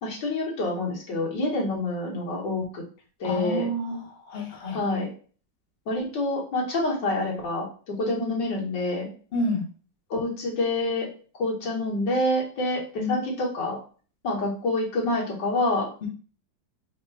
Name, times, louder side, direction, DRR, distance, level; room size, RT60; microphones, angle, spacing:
voice 1, 0.0-2.8 3.2-3.7 4.7-5.1 5.9-9.1 10.1-11.1 11.3-13.8 14.2-15.9, left 2 dB, 70° left, -2 dB, 1.7 m, -27 dB
voice 2, 3.2-4.8 9.3-9.6 13.0-13.1 16.0-16.1, left 1 dB, 40° left, -2 dB, 0.9 m, -29 dB
3.7 x 2.1 x 4.4 m, 0.40 s
omnidirectional pair, 2.0 m